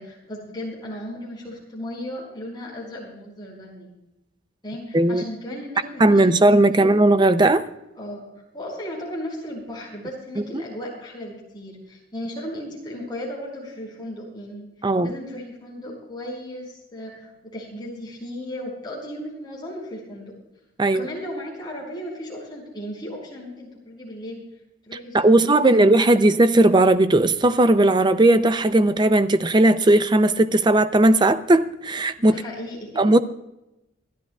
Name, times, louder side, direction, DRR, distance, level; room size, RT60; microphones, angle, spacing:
voice 1, 0.0-3.9 4.6-6.4 6.7-6.9 8.0-8.3 8.5-14.7 15.0-20.3 20.9-24.4 24.9-25.8 26.2-26.3 32.3-33.0, left 1 dB, 20° left, -2 dB, 4.9 m, -36 dB
voice 2, 6.0-7.6 10.5-10.6 14.8-15.1 20.8-21.1 25.1-32.4 33.0-33.2, right 2 dB, 20° right, 12 dB, 0.5 m, -17 dB
27.0 x 12.0 x 2.4 m, 0.91 s
head